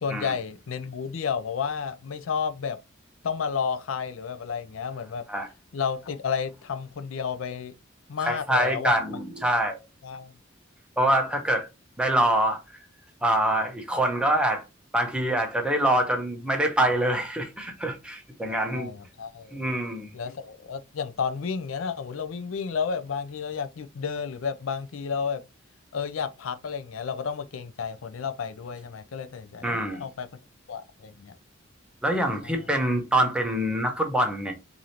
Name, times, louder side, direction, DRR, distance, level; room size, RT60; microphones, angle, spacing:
voice 1, 0.0-2.8 3.2-5.2 5.7-7.7 8.1-9.0 10.0-10.3 18.5-19.6 20.1-25.4 25.9-30.3 30.7-31.3 32.4-32.5, left 6 dB, 90° left, 0.5 m, -31 dB
voice 2, 8.2-9.8 11.0-11.7 12.0-12.6 13.2-14.6 14.9-18.9 19.5-20.1 29.6-30.0 32.0-34.5, right 1 dB, 5° right, 0.8 m, -25 dB
4.8 x 2.7 x 2.8 m
head